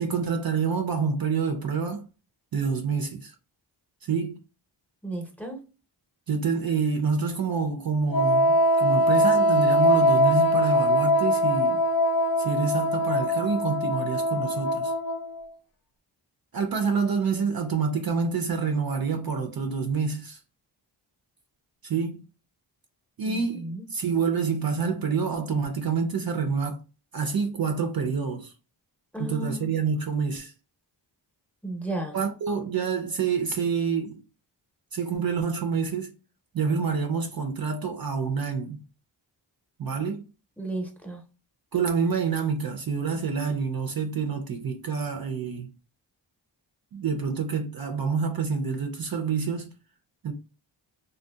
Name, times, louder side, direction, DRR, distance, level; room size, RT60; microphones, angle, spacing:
voice 1, 0.0-2.1 2.5-3.3 4.0-4.4 6.3-11.8 12.4-14.9 16.5-20.4 21.8-22.3 23.2-26.8 27.1-28.5 29.2-30.5 32.1-34.2 34.9-36.1 36.5-38.8 39.8-40.3 41.7-45.7 46.9-49.7 50.2-50.3, right 5 dB, 50° right, 0.5 m, -27 dB
voice 2, 5.0-5.6 23.3-23.8 29.1-29.7 31.6-32.1 40.6-41.2, right 1 dB, 5° left, 0.7 m, -34 dB
Wind instrument woodwind instrument, 8.1-15.4, equal, 50° left, 0.6 m, -22 dB
2.7 x 2.2 x 2.2 m
cardioid pair, 60°, 47 cm